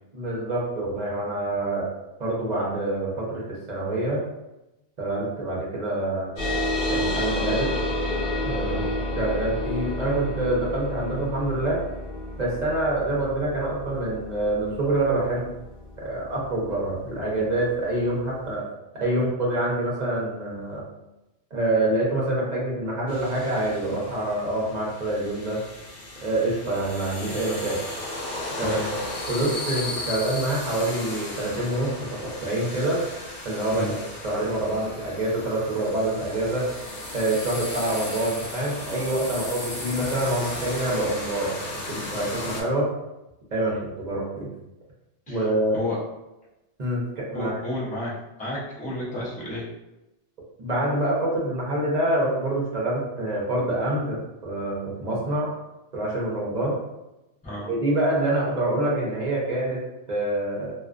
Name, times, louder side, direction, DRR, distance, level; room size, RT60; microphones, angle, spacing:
voice 1, 0.1-1.9 2.2-4.2 5.0-6.3 6.9-7.7 8.4-11.8 12.4-15.5 16.0-18.7 18.9-20.8 21.5-25.6 26.2-27.8 28.6-29.0 29.3-33.0 33.4-34.0 34.2-36.7 37.1-42.9 43.5-44.5 45.3-45.8 46.8-47.6 50.6-55.5 55.9-56.8 57.6-60.7, right 1 dB, 45° right, -5 dB, 0.7 m, -26 dB
sound 1, 6.4-17.3, left 1 dB, 55° left, 1.1 m, -30 dB
sound 2, 23.1-42.6, left 2 dB, 85° left, 1.0 m, -35 dB
voice 2, 47.3-48.1 48.4-49.6 57.4-57.7, left 1 dB, 10° left, -8 dB, 0.5 m, -31 dB
2.4 x 2.3 x 2.3 m, 0.95 s
omnidirectional pair, 1.2 m